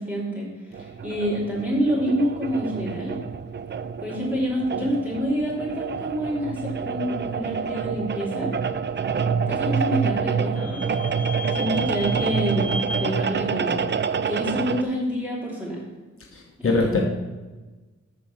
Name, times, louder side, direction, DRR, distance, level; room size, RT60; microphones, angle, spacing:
voice 1, 0.0-3.1 4.0-8.5 9.5-11.2 11.5-13.8 14.3-15.8 16.6-17.0, equal, 5° right, -5 dB, 3.0 m, -27 dB
sound 1, 0.7-14.8, right 6 dB, 35° right, 0.4 m, -27 dB
Vehicle / Squeak, 9.1-14.7, equal, 25° left, 0.7 m, -37 dB
voice 2, 16.3-17.0, left 3 dB, 45° left, -1 dB, 1.1 m, -23 dB
13.0 x 4.5 x 5.6 m, 1.2 s
wide cardioid pair, 160°, 30 cm